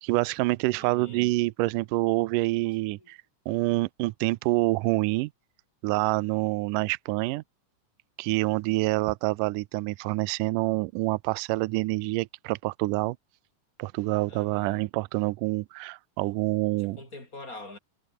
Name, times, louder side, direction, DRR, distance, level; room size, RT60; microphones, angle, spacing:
voice 1, 0.0-3.2 3.5-5.3 5.8-7.4 8.2-13.2 13.8-17.0, right 21 dB, 85° right, 2.1 m, -27 dB
voice 2, 0.8-1.2 3.0-3.1 14.3-14.9 16.8-17.8, left 2 dB, 25° left, 5.9 m, -45 dB
omnidirectional pair, 3.9 m